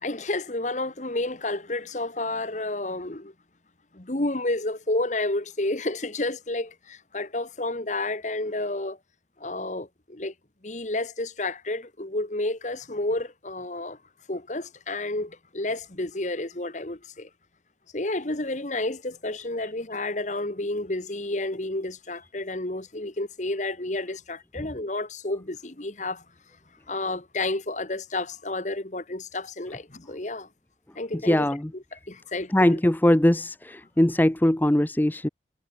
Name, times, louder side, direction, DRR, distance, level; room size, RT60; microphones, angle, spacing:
voice 1, 0.0-3.3 3.9-9.0 9.4-10.3 10.6-14.0 14.3-17.3 17.9-26.2 26.9-30.5 30.9-31.5 32.1-32.8, left 2 dB, 40° left, 1.5 m, -30 dB
voice 2, 31.2-31.7 32.5-35.3, left 1 dB, 10° left, 0.5 m, -21 dB
head